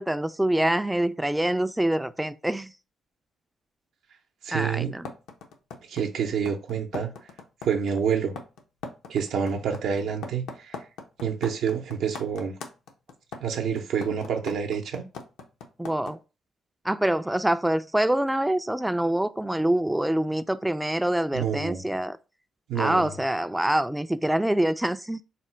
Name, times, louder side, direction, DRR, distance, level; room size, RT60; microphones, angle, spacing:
voice 1, 0.0-2.7 4.5-5.1 15.8-16.2 16.8-22.2 22.8-25.2, right 1 dB, 5° right, 0.3 m, -25 dB
voice 2, 4.4-4.9 5.9-7.1 7.6-8.3 9.1-10.8 11.2-12.5 13.4-15.0 21.3-21.8 22.7-23.1, right 7 dB, 75° right, 0.7 m, -28 dB
sound 1, 5.0-16.1, left 4 dB, 85° left, 0.8 m, -39 dB
4.2 x 2.1 x 4.3 m
cardioid pair, 90°, 0 cm